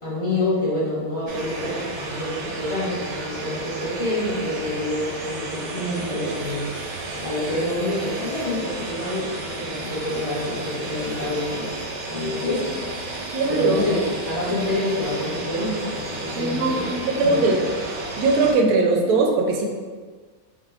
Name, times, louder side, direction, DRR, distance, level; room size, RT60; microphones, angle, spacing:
voice 1, 0.0-6.7 7.2-11.7 12.1-12.8 13.5-16.9 17.2-17.5, left 1 dB, 25° left, -9 dB, 1.1 m, -27 dB
sound 1, 1.3-18.5, right 2 dB, 60° right, 0.9 m, -33 dB
voice 2, 13.3-13.8 16.3-17.6 18.2-19.6, right 3 dB, 85° right, 2 dB, 1.1 m, -20 dB
5.2 x 2.7 x 2.3 m, 1.5 s
omnidirectional pair, 1.6 m